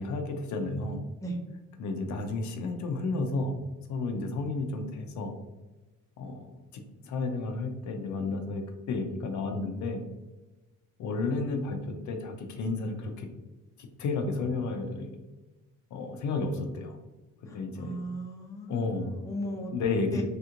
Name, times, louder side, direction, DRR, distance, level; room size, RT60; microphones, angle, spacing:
voice 1, 0.0-1.0 1.8-3.5 3.9-5.3 6.2-10.0 11.0-13.3 13.8-15.1 15.9-17.0 17.4-18.0 18.7-19.1 19.7-20.2, left 3 dB, 65° left, 5 dB, 0.5 m, -32 dB
voice 2, 17.4-19.7 20.1-20.2, equal, 10° left, 0 dB, 0.6 m, -37 dB
3.3 x 2.9 x 2.5 m, 1.1 s
cardioid pair, 140°, 32 cm